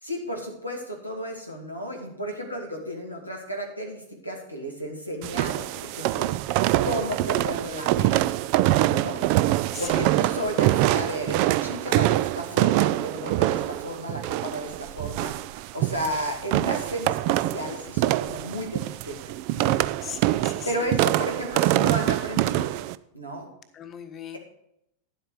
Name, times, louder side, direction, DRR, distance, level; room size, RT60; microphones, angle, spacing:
voice 1, 0.0-6.3 6.8-8.4 8.8-9.2 9.8-19.8 20.6-22.7 23.1-23.5, equal, 90° right, -1 dB, 2.3 m, -33 dB
sound 1, 5.2-23.0, right 16 dB, 45° right, 0.4 m, -24 dB
voice 2, 9.7-10.5 20.0-20.9 23.7-24.4, left 8 dB, 30° left, 9 dB, 0.9 m, -38 dB
10.5 x 7.8 x 4.9 m, 0.77 s
figure-of-eight pair, 90°, 0 cm